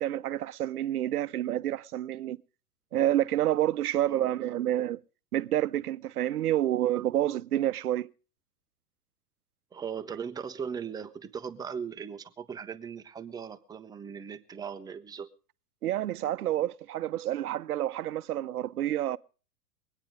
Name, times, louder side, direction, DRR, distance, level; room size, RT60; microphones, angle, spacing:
voice 1, 0.0-2.4 2.9-5.0 5.3-8.1 15.8-19.2, right 12 dB, 70° right, 0.7 m, -28 dB
voice 2, 4.1-4.6 9.7-15.3, right 7 dB, 10° right, 0.7 m, -39 dB
22.5 x 9.3 x 5.1 m
figure-of-eight pair, 105°, 48 cm